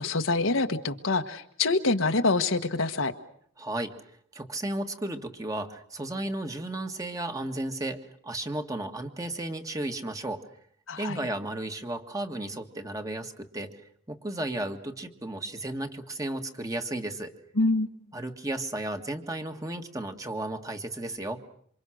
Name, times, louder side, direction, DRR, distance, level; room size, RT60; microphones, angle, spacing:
voice 1, 0.0-3.1 10.9-11.2 17.6-17.9, left 3 dB, 75° left, 6 dB, 1.4 m, -26 dB
voice 2, 3.6-10.4 11.0-17.3 18.1-21.4, right 1 dB, 15° right, 6 dB, 1.7 m, -34 dB
27.5 x 25.5 x 6.4 m, 0.63 s
head